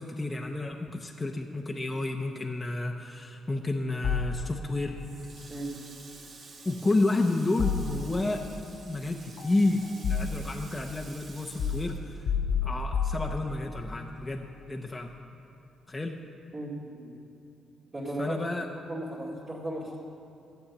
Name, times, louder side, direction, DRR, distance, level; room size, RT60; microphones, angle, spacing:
voice 1, 0.0-5.0 6.6-8.5 8.9-12.3 12.6-15.1 15.9-16.2 18.2-18.7, left 2 dB, 20° left, 1 dB, 0.8 m, -30 dB
sound 1, 4.0-4.9 7.6-8.5 9.4-10.7 11.6-13.8, left 6 dB, 75° left, 0.6 m, -31 dB
Water tap faucet, 5.0-12.8 13.1-14.4, right 3 dB, 55° right, 1.6 m, -50 dB
voice 2, 5.5-5.9 16.5-17.1 17.9-18.4 18.9-20.0, right 1 dB, 35° right, -9 dB, 2.4 m, -36 dB
12.5 x 8.0 x 7.2 m, 2.8 s
cardioid pair, 90°, 0 cm